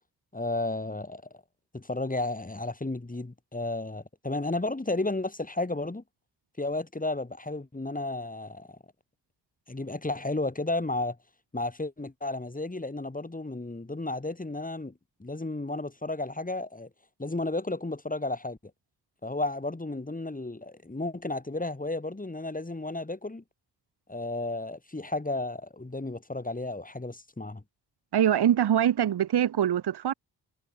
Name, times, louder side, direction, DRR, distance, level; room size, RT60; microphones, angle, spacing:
voice 1, 0.3-1.2 1.7-6.0 6.6-8.8 9.7-11.2 11.5-14.9 15.2-16.9 17.2-18.6 19.2-23.4 24.1-27.6, left 2 dB, 20° left, 4.7 m, -33 dB
voice 2, 28.1-30.1, right 10 dB, 65° right, 1.6 m, -23 dB
supercardioid pair, 45°, 43 cm